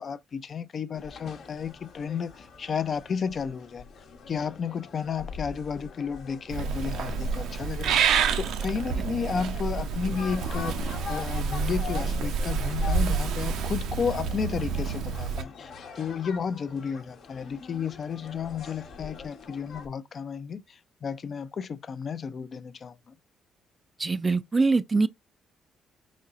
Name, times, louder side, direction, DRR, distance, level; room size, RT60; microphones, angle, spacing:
voice 1, 0.0-3.9 4.3-23.1, left 6 dB, 50° left, 0.4 m, -33 dB
sound 1, 0.9-19.9, left 6 dB, 75° left, 1.0 m, -44 dB
Purr / Meow, 6.5-15.4, right 5 dB, 80° right, 0.6 m, -28 dB
voice 2, 24.0-25.1, right 3 dB, 30° right, 0.3 m, -23 dB
4.2 x 3.8 x 2.4 m
cardioid pair, 90°, 0 cm